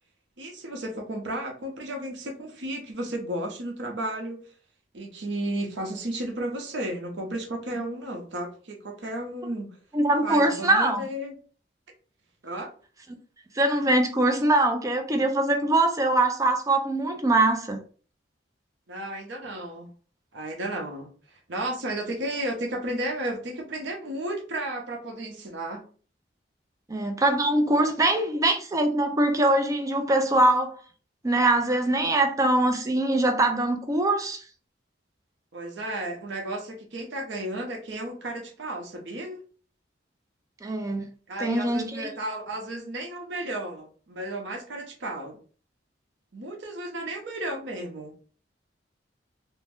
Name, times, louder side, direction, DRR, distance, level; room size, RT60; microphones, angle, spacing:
voice 1, 0.4-4.4 4.9-9.7 10.2-11.3 12.4-12.7 18.9-19.9 20.3-21.1 21.5-25.9 35.5-39.4 41.3-45.4 46.3-48.2, right 1 dB, 75° right, 0.7 m, -33 dB
voice 2, 9.9-11.0 13.6-17.8 26.9-30.8 31.2-34.4 40.6-41.0 41.4-42.1, right 2 dB, 20° right, 0.4 m, -23 dB
2.5 x 2.1 x 3.4 m
head